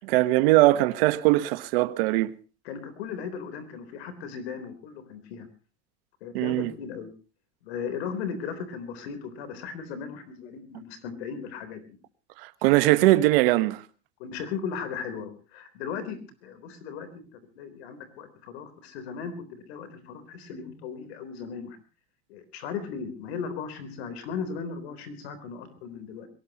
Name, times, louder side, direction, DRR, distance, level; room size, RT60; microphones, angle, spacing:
voice 1, 0.1-2.3 6.3-6.7 12.4-13.8, right 17 dB, 60° right, 1.3 m, -21 dB
voice 2, 2.6-5.5 6.2-7.1 7.6-11.8 14.2-21.8 22.3-26.3, left 6 dB, 70° left, 3.7 m, -37 dB
22.5 x 18.5 x 2.9 m
supercardioid pair, 180°, 32 cm